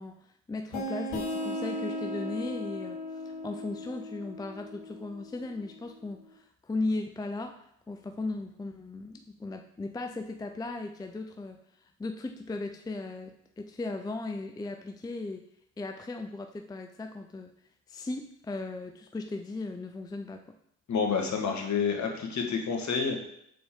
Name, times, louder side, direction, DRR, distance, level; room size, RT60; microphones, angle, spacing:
voice 1, 0.0-15.5 15.8-17.5 17.9-20.4, left 2 dB, 10° left, 5 dB, 0.5 m, -37 dB
sound 1, 0.7-6.1, left 1 dB, 80° left, 1.5 m, -37 dB
voice 2, 20.9-23.3, left 5 dB, 45° left, 2 dB, 1.5 m, -29 dB
6.5 x 4.2 x 3.7 m, 0.71 s
hypercardioid pair, 55°, 38 cm